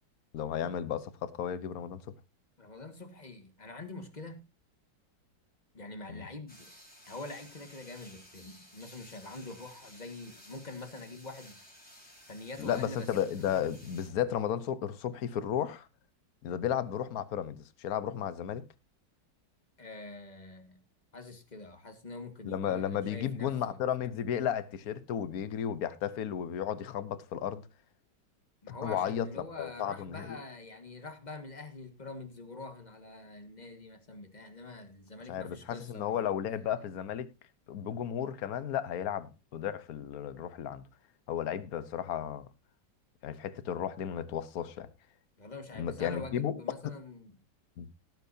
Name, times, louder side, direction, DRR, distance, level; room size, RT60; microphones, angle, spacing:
voice 1, 0.3-2.0 6.1-6.3 12.6-15.9 16.4-18.6 22.4-27.7 28.7-29.3 29.6-30.4 35.3-37.3 37.7-40.8 41.3-42.5 43.2-44.9 45.8-46.5 46.8-46.9 47.8-47.9, left 9 dB, 60° left, 1.3 m, -34 dB
voice 2, 2.6-4.5 5.7-6.7 7.1-11.6 12.3-13.8 19.8-20.8 21.1-23.8 28.6-36.2 45.4-47.4, left 3 dB, 25° left, 1.7 m, -45 dB
sound 1, 6.5-14.1, equal, 5° left, 4.1 m, -55 dB
17.5 x 9.4 x 2.7 m
omnidirectional pair, 1.9 m